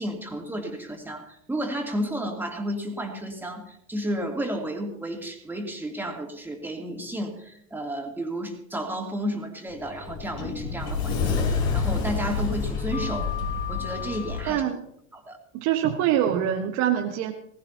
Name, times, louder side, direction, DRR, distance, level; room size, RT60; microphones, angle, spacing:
voice 1, 0.0-13.3 13.7-14.6 15.1-15.4, equal, 5° right, 1 dB, 3.0 m, -32 dB
Sliding door, 9.7-14.5, left 5 dB, 55° left, 5.4 m, -28 dB
voice 2, 14.4-14.9 15.5-17.3, right 10 dB, 40° right, 3 dB, 1.5 m, -24 dB
19.5 x 18.5 x 2.9 m, 0.69 s
figure-of-eight pair, 80°, 41 cm